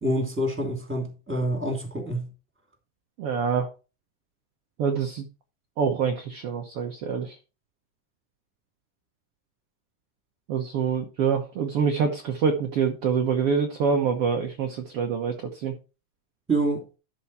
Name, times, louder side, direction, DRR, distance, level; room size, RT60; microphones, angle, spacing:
voice 1, 0.0-2.3 16.5-16.8, right 1 dB, 5° right, 2.1 m, -27 dB
voice 2, 3.2-3.7 4.8-5.3 5.8-7.4 10.5-15.8, right 6 dB, 70° right, 1.4 m, -26 dB
12.5 x 4.7 x 4.2 m
omnidirectional pair, 3.9 m